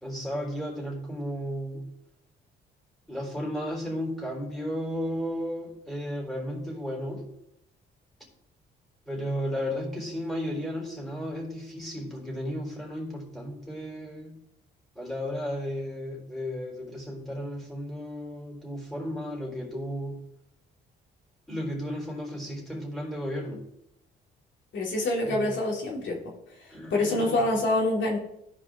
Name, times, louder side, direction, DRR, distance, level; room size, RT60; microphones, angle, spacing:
voice 1, 0.0-1.9 3.1-7.3 9.1-14.4 15.0-20.2 21.5-23.7 25.2-25.5 26.7-27.6, equal, ahead, -2 dB, 3.8 m, -34 dB
voice 2, 24.7-26.2 26.6-28.2, left 2 dB, 70° left, -2 dB, 2.3 m, -26 dB
14.5 x 5.0 x 3.7 m, 0.80 s
cardioid pair, 90°, 20 cm